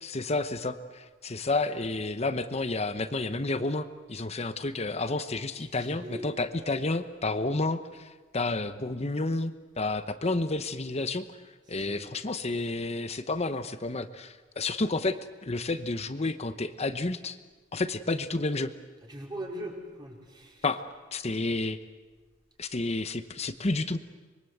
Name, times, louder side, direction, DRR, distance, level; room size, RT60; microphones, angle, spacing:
voice 1, 0.0-11.4 11.7-15.2 15.4-17.4 17.7-18.7 20.6-21.8 22.6-24.0, left 2 dB, 35° left, 10 dB, 1.0 m, -30 dB
voice 2, 5.6-6.4 11.8-12.1 19.1-20.6, right 1 dB, 25° right, -1 dB, 4.9 m, -41 dB
25.0 x 23.0 x 8.0 m, 1.3 s
head